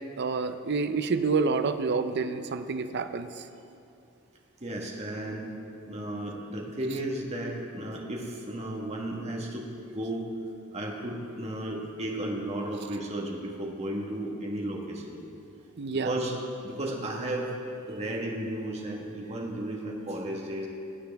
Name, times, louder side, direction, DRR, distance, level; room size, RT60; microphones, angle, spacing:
voice 1, 0.2-3.3 15.8-16.2, right 4 dB, 55° right, 9 dB, 0.5 m, -28 dB
voice 2, 4.6-5.5 5.9-9.7 9.9-10.3 10.7-15.2 16.0-16.4 16.6-17.5 17.9-20.7, right 1 dB, 30° right, -1 dB, 1.5 m, -34 dB
19.0 x 7.9 x 3.5 m, 2.6 s
head